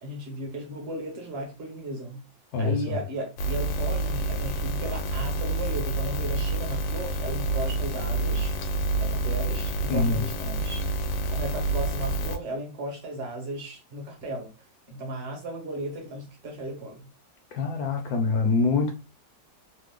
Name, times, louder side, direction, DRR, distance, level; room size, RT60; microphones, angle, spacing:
voice 1, 0.0-2.2 2.6-8.5 9.0-10.8 11.3-14.5 14.9-17.1, right 1 dB, 40° right, 1.1 m, -35 dB
voice 2, 2.5-3.0 9.9-10.2 17.5-18.9, left 4 dB, 70° left, 1.0 m, -25 dB
sound 1, 3.4-12.4, right 2 dB, 85° left, 1.4 m, -28 dB
3.3 x 2.0 x 3.5 m
omnidirectional pair, 2.0 m